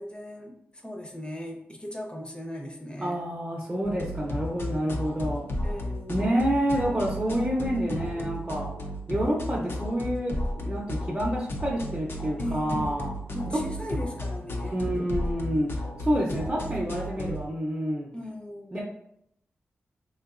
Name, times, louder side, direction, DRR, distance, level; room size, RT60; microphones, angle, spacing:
voice 1, 0.0-3.1 5.6-6.3 12.4-13.0 13.3-14.7 18.1-18.8, left 1 dB, 20° left, 2 dB, 0.7 m, -38 dB
voice 2, 3.0-5.5 6.1-8.7 9.1-13.1 13.5-13.6 14.6-18.1 18.7-18.8, equal, 25° right, -5 dB, 0.7 m, -28 dB
sound 1, 3.8-17.5, left 1 dB, 55° left, 0.5 m, -33 dB
3.8 x 2.6 x 2.5 m, 0.75 s
cardioid pair, 60°, 5 cm